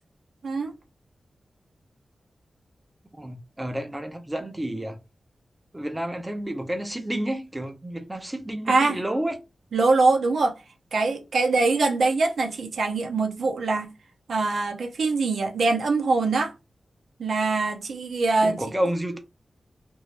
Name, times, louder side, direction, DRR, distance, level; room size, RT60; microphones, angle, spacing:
voice 1, 3.1-5.0 5.7-9.4 18.4-19.2, right 1 dB, 15° right, 0.7 m, -30 dB
voice 2, 8.7-9.0 9.7-10.6 10.9-13.9 14.3-16.5 17.2-18.6, right 3 dB, 85° right, 0.7 m, -23 dB
3.0 x 2.7 x 3.2 m
wide cardioid pair, 115°, 0 cm